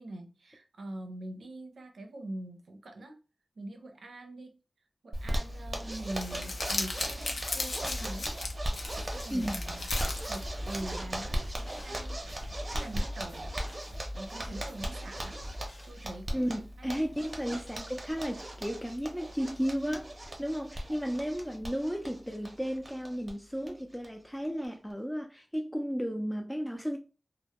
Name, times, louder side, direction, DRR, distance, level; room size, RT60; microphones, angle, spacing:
voice 1, 0.0-3.2 3.6-4.6 5.0-8.3 9.1-9.8 10.2-12.2 12.7-13.6 14.2-16.4 16.8-17.0, right 1 dB, 90° right, 0.5 m, -43 dB
Zipper (clothing), 5.1-23.3 23.6-23.7 24.0-24.1 24.4-24.9, right 1 dB, 40° right, 0.6 m, -38 dB
Crumpling crinkling, 5.9-11.0, left 2 dB, 75° left, 0.4 m, -37 dB
sound 1, 7.9-15.9, left 1 dB, 45° left, 0.7 m, -44 dB
voice 2, 9.3-9.6 16.3-27.0, equal, 5° left, 0.3 m, -34 dB
2.1 x 2.0 x 2.8 m
wide cardioid pair, 70°, 0 cm